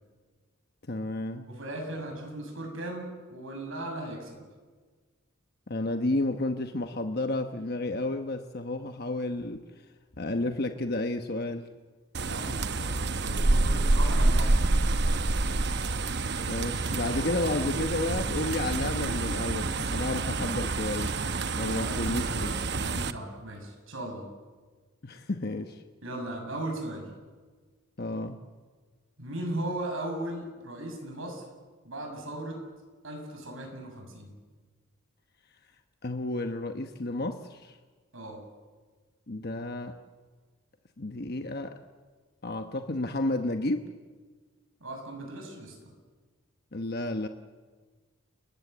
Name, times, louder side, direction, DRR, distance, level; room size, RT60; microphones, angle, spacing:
voice 1, 0.9-1.5 5.7-9.6 10.2-11.7 16.1-21.2 21.6-22.6 25.0-25.8 28.0-28.4 36.0-37.8 39.3-40.0 41.0-41.8 42.4-43.9 46.7-47.3, left 2 dB, 45° left, 6 dB, 1.1 m, -31 dB
voice 2, 1.5-4.4 12.2-14.7 21.6-24.3 26.0-27.1 29.2-31.4 31.8-32.6 33.0-34.3 38.1-38.4 44.8-45.9, right 1 dB, 70° right, 3 dB, 7.1 m, -37 dB
sound 1, 12.1-23.1, right 2 dB, 50° right, 0.9 m, -27 dB
30.0 x 20.0 x 8.0 m, 1.4 s
head